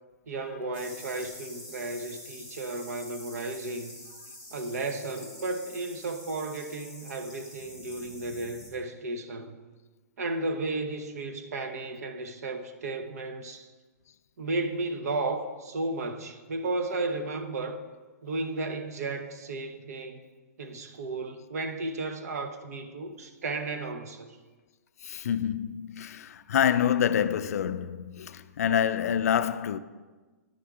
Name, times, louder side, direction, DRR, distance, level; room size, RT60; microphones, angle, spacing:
voice 1, 0.3-3.9 4.5-9.6 10.2-13.7 14.4-17.8 18.2-20.2 20.6-24.4, right 2 dB, 65° right, 0.8 m, -34 dB
sound 1, 0.7-8.7, left 1 dB, 10° right, 1.7 m, -46 dB
voice 2, 25.0-29.8, left 9 dB, 65° left, 0.3 m, -27 dB
10.5 x 3.6 x 4.8 m
hypercardioid pair, 165°, 9 cm